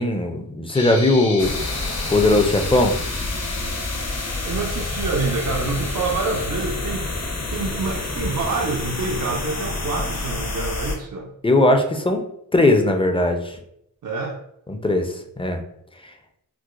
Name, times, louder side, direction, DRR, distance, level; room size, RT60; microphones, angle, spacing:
voice 1, 0.0-1.5 2.1-3.0 11.4-12.2 12.5-13.6 14.7-15.6, left 2 dB, 15° left, 5 dB, 0.5 m, -19 dB
sound 1, 0.7-6.5, left 3 dB, 85° left, 0.9 m, -35 dB
sound 2, 1.4-11.0, left 2 dB, 45° left, 0.9 m, -28 dB
voice 2, 4.5-11.3 14.0-14.4, right 3 dB, 60° right, 0 dB, 0.5 m, -27 dB
4.5 x 2.0 x 2.4 m, 0.76 s
cardioid pair, 55°, 35 cm